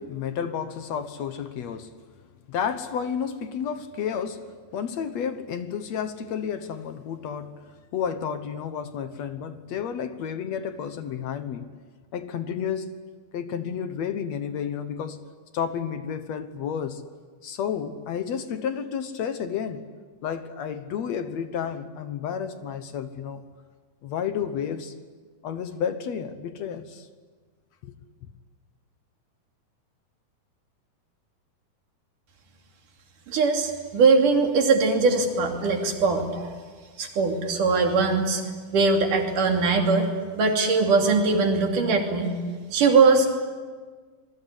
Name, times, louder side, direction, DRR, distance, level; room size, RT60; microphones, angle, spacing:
voice 1, 0.0-2.0 2.5-7.7 7.9-11.7 12.1-13.0 13.3-15.2 15.5-17.0 17.4-19.9 20.2-23.4 24.0-24.9 25.4-27.1 27.8-27.9, left 7 dB, 65° left, 2.1 m, -31 dB
voice 2, 33.3-36.4 37.0-38.4 38.7-40.1 40.4-42.3 42.7-43.4, right 4 dB, 80° right, 4.4 m, -21 dB
27.0 x 21.5 x 10.0 m
omnidirectional pair, 3.7 m